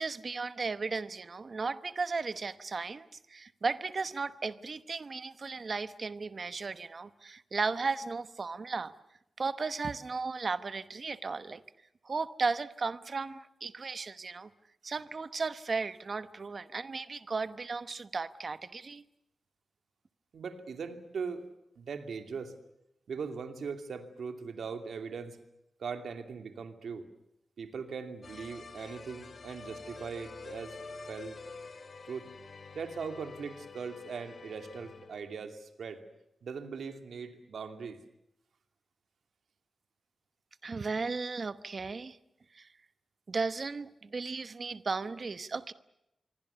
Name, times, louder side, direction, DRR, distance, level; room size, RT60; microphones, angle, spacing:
voice 1, 0.0-8.9 9.4-11.6 12.0-14.5 14.8-19.0 40.6-42.2 42.5-42.7 43.3-45.7, right 4 dB, 40° right, 14 dB, 1.0 m, -35 dB
voice 2, 20.3-21.5 21.8-22.6 23.1-25.4 25.8-27.1 27.6-30.8 31.1-31.4 32.1-32.3 32.7-36.0 36.4-38.0, right 5 dB, 85° right, 7 dB, 2.6 m, -40 dB
sound 1, 28.2-35.4, left 4 dB, 45° left, 2.0 m, -47 dB
26.5 x 24.0 x 7.0 m, 0.84 s
wide cardioid pair, 175°, 0 cm